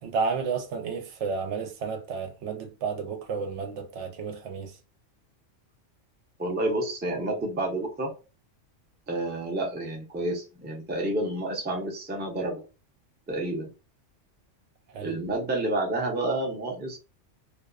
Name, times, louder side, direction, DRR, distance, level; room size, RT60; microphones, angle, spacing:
voice 1, 0.0-4.8 14.9-15.2, right 5 dB, 70° right, 0.9 m, -32 dB
voice 2, 6.4-8.1 9.1-12.6 13.3-13.7 15.0-17.0, right 2 dB, 15° right, 0.4 m, -29 dB
2.5 x 2.3 x 2.3 m
omnidirectional pair, 1.3 m